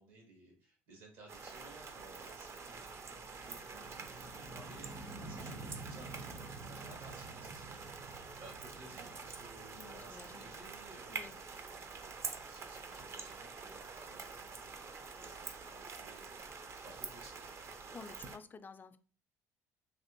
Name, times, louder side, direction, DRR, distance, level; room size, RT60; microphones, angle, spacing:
voice 1, 0.0-17.5, right 2 dB, 75° right, 0 dB, 1.5 m, -58 dB
sound 1, 1.3-18.4, right 4 dB, 40° right, 0.5 m, -47 dB
sound 2, 1.9-12.4, right 2 dB, 55° right, 1.1 m, -51 dB
voice 2, 9.8-10.5 11.1-11.4 17.9-19.0, left 5 dB, 25° left, 10 dB, 0.3 m, -52 dB
3.3 x 2.5 x 2.9 m, 0.41 s
supercardioid pair, 75°, 7 cm